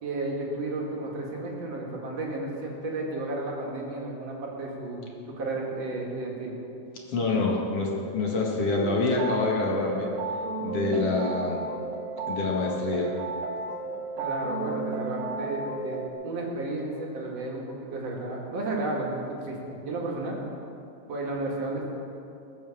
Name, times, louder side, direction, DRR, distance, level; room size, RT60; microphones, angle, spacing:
voice 1, 0.0-6.5 14.2-20.4 21.1-21.8, right 2 dB, 60° right, -2 dB, 3.2 m, -33 dB
voice 2, 7.1-10.1 10.6-11.7 12.3-13.1, left 3 dB, 55° left, -2 dB, 2.7 m, -26 dB
sound 1, 8.7-16.1, right 3 dB, 80° right, 2.3 m, -33 dB
20.5 x 7.5 x 7.3 m, 2.8 s
omnidirectional pair, 3.4 m